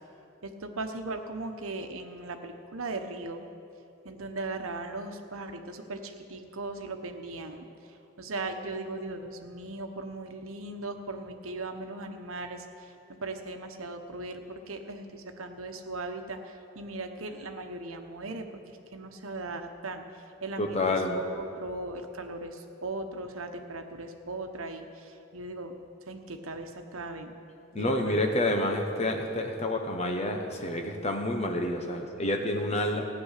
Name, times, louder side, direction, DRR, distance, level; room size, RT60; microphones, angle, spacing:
voice 1, 0.4-3.5 4.0-7.7 8.2-12.6 13.1-18.5 18.9-20.0 20.4-20.8 21.1-24.9 25.3-25.7 26.1-27.3 27.7-28.2, right 2 dB, 85° right, 6 dB, 1.1 m, -38 dB
voice 2, 20.6-21.2 27.7-33.0, left 1 dB, 30° left, 3 dB, 1.2 m, -28 dB
15.0 x 9.6 x 6.6 m, 2.8 s
head